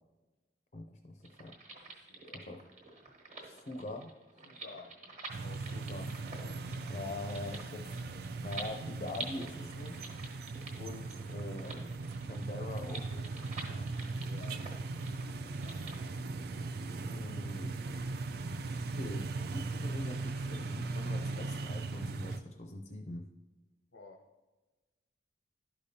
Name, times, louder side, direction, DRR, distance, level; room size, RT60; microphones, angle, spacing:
voice 1, 0.7-1.5 2.3-2.6 3.4-4.2 5.7-6.2 6.9-8.0 8.4-10.1 10.8-11.9 12.2-13.9 17.1-17.9 18.9-23.3, left 2 dB, 40° left, 4 dB, 0.5 m, -43 dB
sound 1, 1.2-16.0, right 2 dB, 40° right, 1.3 m, -48 dB
voice 2, 1.9-2.4 4.4-6.0 6.3-7.1 14.2-14.6 15.5-15.8 23.9-24.2, left 3 dB, 90° left, 1 dB, 0.8 m, -54 dB
sound 2, 5.3-22.4, right 3 dB, 55° right, 0.4 m, -39 dB
11.5 x 5.1 x 2.8 m, 1.2 s
head